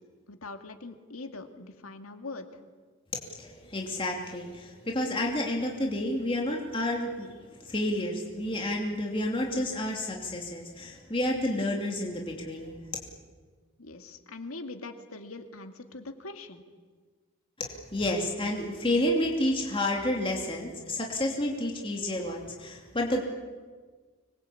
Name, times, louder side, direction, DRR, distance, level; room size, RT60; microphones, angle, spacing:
voice 1, 0.3-2.6 13.8-16.6, left 3 dB, 90° left, 6 dB, 2.2 m, -42 dB
voice 2, 3.4-13.0 17.6-23.2, left 1 dB, 25° left, 0 dB, 2.8 m, -30 dB
25.5 x 22.0 x 8.5 m, 1.5 s
head